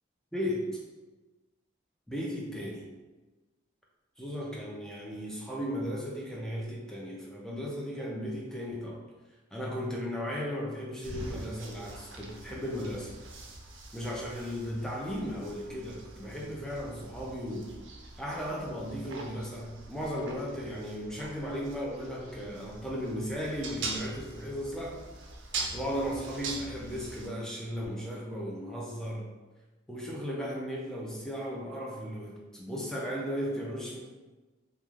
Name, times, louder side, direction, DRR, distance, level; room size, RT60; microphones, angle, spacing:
voice 1, 0.3-0.8 2.1-2.9 4.2-9.0 9.5-13.1 13.9-17.7 18.2-25.0 25.7-29.3 29.9-34.0, equal, 5° left, -3 dB, 0.4 m, -36 dB
sound 1, 11.0-27.3, right 3 dB, 70° right, 0.4 m, -43 dB
3.1 x 2.3 x 2.3 m, 1.2 s
head